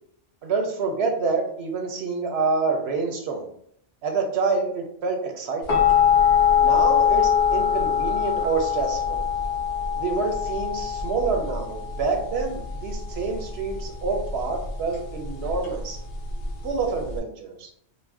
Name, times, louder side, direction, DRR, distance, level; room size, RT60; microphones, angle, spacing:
voice 1, 0.4-3.5 4.0-5.8 6.6-9.2 10.0-16.0 16.6-17.7, right 4 dB, 70° right, 3 dB, 0.8 m, -27 dB
sound 1, 5.7-17.2, left 7 dB, 65° left, 0.8 m, -23 dB
2.5 x 2.1 x 3.4 m, 0.68 s
omnidirectional pair, 1.1 m